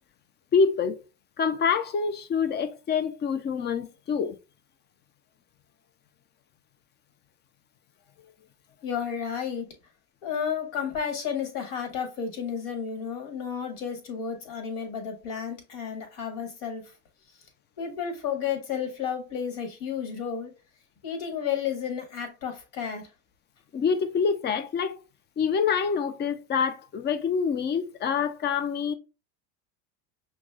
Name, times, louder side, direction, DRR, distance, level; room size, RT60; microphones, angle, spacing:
voice 1, 0.5-1.0 1.4-4.3 23.7-25.0 25.4-28.9, left 6 dB, 25° left, 0.4 m, -26 dB
voice 2, 8.8-9.7 10.2-16.9 17.8-20.5 21.0-23.1, left 7 dB, 65° left, 1.6 m, -32 dB
5.9 x 2.1 x 2.3 m
hypercardioid pair, 90°, 46 cm